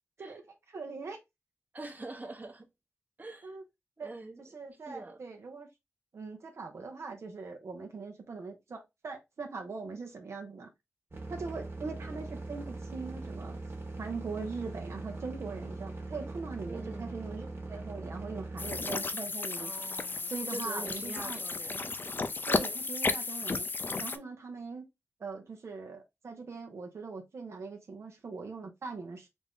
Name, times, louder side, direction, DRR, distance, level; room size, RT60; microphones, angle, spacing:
voice 1, 0.2-1.2 3.4-3.6 4.0-4.1 4.4-5.7 6.1-10.7 11.3-13.6 14.0-19.7 20.3-21.4 22.5-23.7 24.0-24.8 25.2-29.3, right 4 dB, 80° right, 0.7 m, -41 dB
voice 2, 1.7-2.7 3.2-3.6 4.0-4.4 4.9-5.2 16.7-17.2 19.6-21.8, right 2 dB, 40° right, 0.9 m, -44 dB
sound 1, 11.1-18.8, right 3 dB, 60° right, 1.2 m, -41 dB
sound 2, 18.6-24.2, left 3 dB, 45° left, 0.4 m, -33 dB
3.5 x 2.6 x 3.4 m
wide cardioid pair, 80°, 5 cm